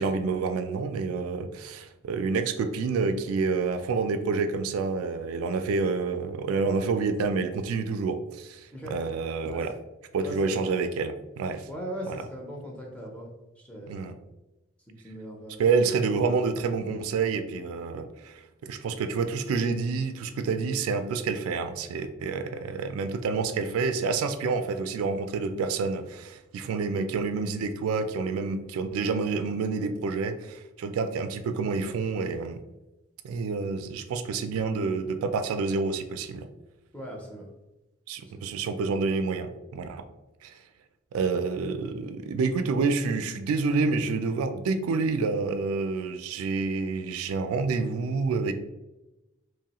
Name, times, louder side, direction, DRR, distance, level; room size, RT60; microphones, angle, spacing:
voice 1, 0.0-9.7 10.1-11.7 12.1-12.2 13.9-14.1 15.6-32.6 33.2-36.5 38.1-40.0 40.4-40.6 41.1-48.5, right 4 dB, 90° right, 9 dB, 0.3 m, -28 dB
voice 2, 10.2-10.6 11.7-13.3 13.6-14.1 14.9-15.6 26.6-26.7 36.9-37.5 38.2-38.5, equal, 5° left, -1 dB, 0.5 m, -39 dB
3.0 x 2.3 x 2.8 m, 0.99 s
head